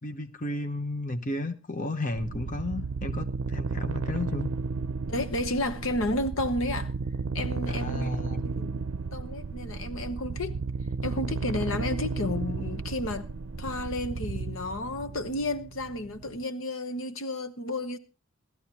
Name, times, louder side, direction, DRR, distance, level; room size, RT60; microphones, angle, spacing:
voice 1, 0.0-4.5 7.7-8.4, left 2 dB, 40° left, 1.0 m, -33 dB
sound 1, 2.1-16.4, right 4 dB, 70° right, 0.6 m, -33 dB
voice 2, 5.1-6.9 7.3-8.8 9.1-10.6 11.0-13.3 13.6-18.0, left 1 dB, 70° left, 1.1 m, -32 dB
17.5 x 13.0 x 3.0 m
head